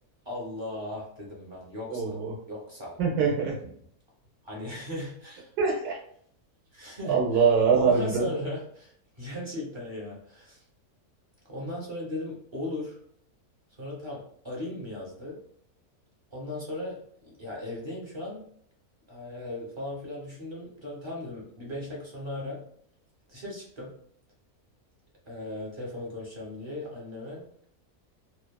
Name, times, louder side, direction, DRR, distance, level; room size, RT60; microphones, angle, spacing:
voice 1, 0.2-2.0 2.5-3.0 4.4-5.5 6.7-7.4 7.7-10.6 11.4-13.0 13.8-14.2 14.4-15.4 16.3-16.9 17.2-18.5 19.1-22.6 23.3-23.9 25.3-27.4, left 1 dB, 25° right, -4 dB, 0.6 m, -37 dB
voice 2, 1.9-2.3 3.0-3.7 5.6-6.0 7.0-8.2, right 5 dB, 85° right, -1 dB, 1.4 m, -24 dB
2.9 x 2.4 x 2.2 m, 0.64 s
omnidirectional pair, 1.6 m